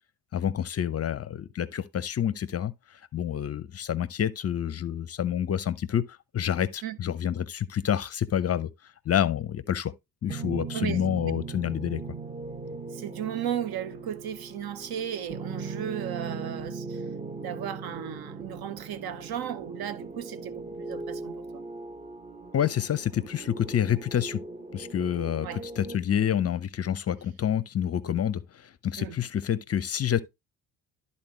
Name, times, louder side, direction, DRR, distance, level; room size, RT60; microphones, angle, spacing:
voice 1, 0.3-8.7 9.1-9.9 10.2-12.1 22.5-24.4 24.7-30.2, left 9 dB, 35° left, 0.6 m, -28 dB
sound 1, 10.3-26.0, right 4 dB, 15° right, 0.8 m, -39 dB
voice 2, 10.7-11.1 12.9-17.0 17.4-21.6 25.4-25.6 29.0-29.2, right 10 dB, 55° right, 0.9 m, -35 dB
12.0 x 4.3 x 2.9 m
hypercardioid pair, 50°, 45 cm